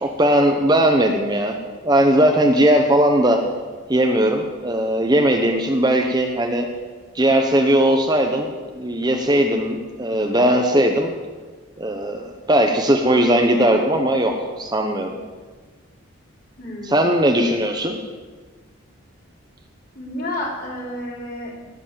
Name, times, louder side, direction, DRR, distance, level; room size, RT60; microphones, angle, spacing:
voice 1, 0.0-1.5 1.8-3.4 3.9-6.7 7.1-11.1 11.8-12.2 12.5-15.2 16.8-18.0, right 1 dB, 20° right, 3 dB, 1.0 m, -18 dB
voice 2, 16.6-17.1 19.9-21.7, left 1 dB, 45° left, -3 dB, 3.9 m, -31 dB
18.0 x 8.3 x 7.5 m, 1.4 s
head